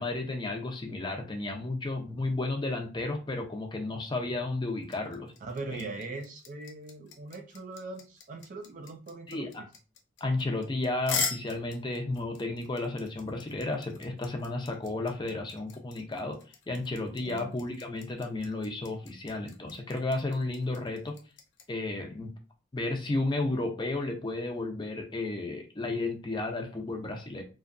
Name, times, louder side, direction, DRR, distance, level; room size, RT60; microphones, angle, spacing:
voice 1, 0.0-5.3 5.7-5.8 9.3-9.6 10.2-16.4 16.7-21.2 21.7-22.3 22.7-27.4, left 2 dB, 25° left, 3 dB, 0.5 m, -33 dB
sound 1, 4.8-21.6, left 5 dB, 80° left, 0.5 m, -39 dB
voice 2, 5.4-9.7 17.2-17.5, right 2 dB, 45° right, 4 dB, 0.3 m, -40 dB
2.6 x 2.2 x 2.5 m, 0.33 s
head